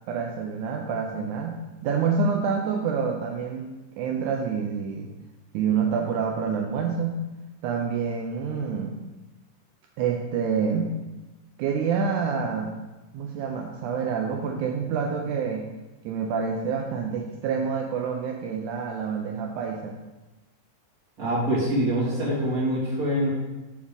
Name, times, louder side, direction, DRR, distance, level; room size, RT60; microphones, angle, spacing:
voice 1, 0.1-3.7 4.0-5.1 5.5-7.3 7.6-9.0 10.0-10.9 11.6-12.8 13.1-15.7 16.0-20.0, right 6 dB, 80° right, 1 dB, 1.8 m, -27 dB
voice 2, 21.2-23.3, right 1 dB, 25° right, -8 dB, 2.8 m, -24 dB
7.2 x 4.9 x 5.3 m, 1.1 s
omnidirectional pair, 4.1 m